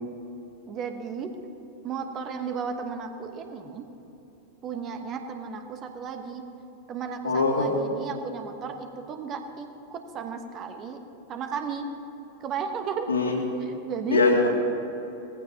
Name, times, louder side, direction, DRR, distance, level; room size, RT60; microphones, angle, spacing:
voice 1, 0.7-1.3 1.8-3.9 4.6-6.4 6.9-11.0 11.3-11.9 12.4-13.1 13.7-14.2, right 6 dB, 30° right, 6 dB, 1.2 m, -34 dB
voice 2, 7.2-7.7 13.1-13.4 14.1-14.5, left 3 dB, 75° left, -2 dB, 2.4 m, -22 dB
19.0 x 15.0 x 3.0 m, 2.9 s
figure-of-eight pair, 90°, 0 cm